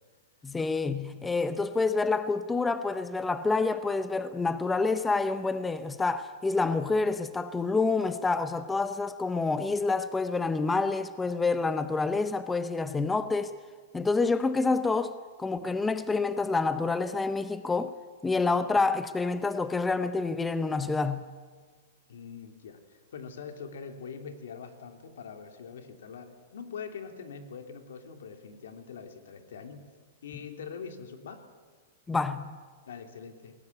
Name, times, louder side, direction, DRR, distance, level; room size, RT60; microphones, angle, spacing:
voice 1, 0.4-13.6 13.9-17.9 18.2-21.3 32.1-32.5, left 3 dB, 5° left, 0.6 m, -28 dB
voice 2, 22.1-22.8 23.1-29.9 30.2-31.4 32.9-33.5, left 6 dB, 85° left, 3.1 m, -43 dB
23.0 x 18.5 x 9.8 m
supercardioid pair, 170°, 0 cm